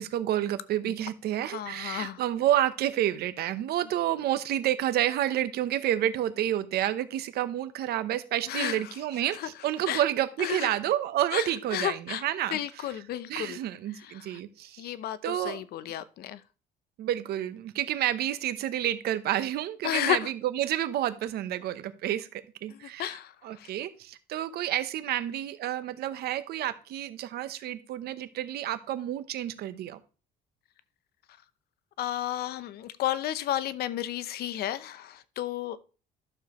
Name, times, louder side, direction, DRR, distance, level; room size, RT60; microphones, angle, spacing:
voice 1, 0.0-12.6 13.3-14.8 15.2-15.6 17.0-23.1 23.4-30.0, right 12 dB, 70° right, 0.9 m, -29 dB
voice 2, 1.4-2.2 8.5-8.9 9.3-9.5 9.9-10.0 10.4-10.7 11.3-12.2 12.5-13.6 14.0-14.4 14.8-16.4 19.8-20.3 22.7-23.7 32.0-35.8, left 12 dB, 65° left, 0.7 m, -32 dB
12.0 x 6.8 x 3.1 m
cardioid pair, 110°, 17 cm